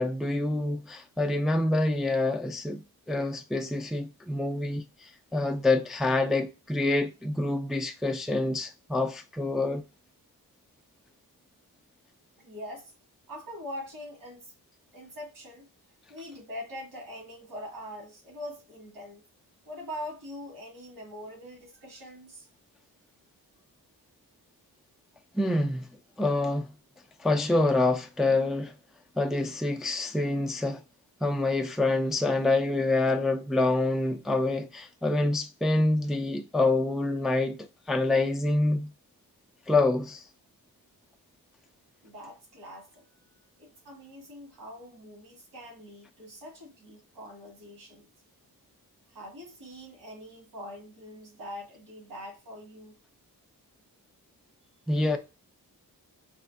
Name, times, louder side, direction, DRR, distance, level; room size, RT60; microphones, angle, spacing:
voice 1, 0.0-9.8 25.3-25.9 26.2-26.7 27.2-28.7 29.2-30.8 31.2-37.6 37.9-38.9 39.7-40.2 54.9-55.2, left 2 dB, ahead, 0.3 m, -26 dB
voice 2, 12.4-12.9 13.3-14.5 14.9-15.7 16.1-19.2 19.6-22.5 42.0-43.1 43.6-48.1 49.1-53.0, equal, 75° right, 1.5 m, -43 dB
3.5 x 2.1 x 2.4 m
cardioid pair, 85°, 37 cm